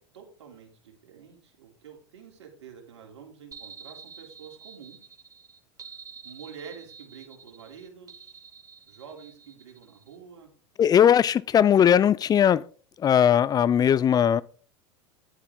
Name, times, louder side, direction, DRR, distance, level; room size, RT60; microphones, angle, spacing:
voice 1, 0.0-5.0 6.2-8.4 8.9-10.5, right 7 dB, 85° right, 3.1 m, -47 dB
sound 1, 3.5-10.2, right 6 dB, 25° right, 1.1 m, -48 dB
voice 2, 10.8-12.6 13.0-14.4, left 9 dB, 25° left, 0.5 m, -19 dB
10.0 x 8.2 x 3.7 m
hypercardioid pair, 100°, 15 cm